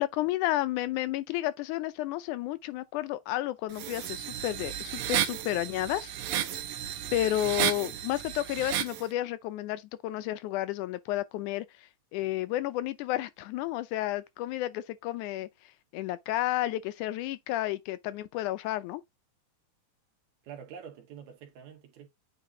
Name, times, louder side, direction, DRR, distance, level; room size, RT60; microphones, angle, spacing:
voice 1, 0.0-6.1 7.1-11.7 12.1-15.5 15.9-19.0, left 15 dB, 85° left, 2.1 m, -31 dB
sound 1, 3.7-9.0, right 11 dB, 90° right, 1.2 m, -33 dB
voice 2, 20.4-22.1, right 7 dB, 70° right, 2.6 m, -46 dB
9.0 x 3.8 x 2.7 m
omnidirectional pair, 3.5 m